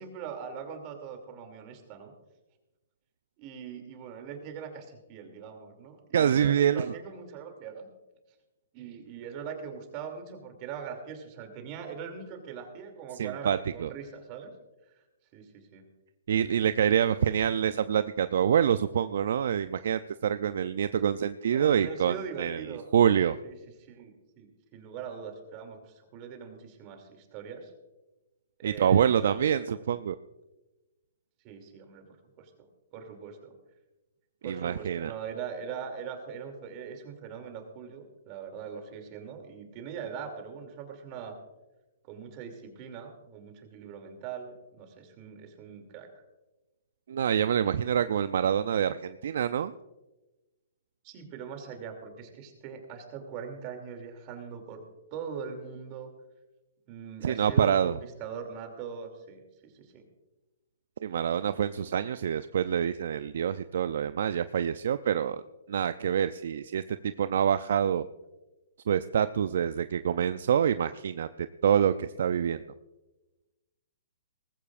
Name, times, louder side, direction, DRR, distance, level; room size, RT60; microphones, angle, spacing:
voice 1, 0.0-2.1 3.4-7.9 8.7-14.5 14.8-15.0 15.3-15.9 21.5-22.8 23.4-27.7 28.6-29.5 29.8-29.9 31.4-33.5 34.4-41.4 42.1-46.1 51.0-54.8 55.1-56.1 56.9-60.1, right 6 dB, 35° right, 5 dB, 2.7 m, -41 dB
voice 2, 6.1-6.9 13.2-13.9 16.3-22.6 22.9-23.4 28.6-30.2 34.4-35.1 47.1-49.7 57.2-58.0 61.0-65.4 65.7-68.1 68.9-72.6, right 8 dB, 65° right, 12 dB, 0.4 m, -26 dB
19.0 x 15.0 x 2.5 m, 1.1 s
hypercardioid pair, 135°, 0 cm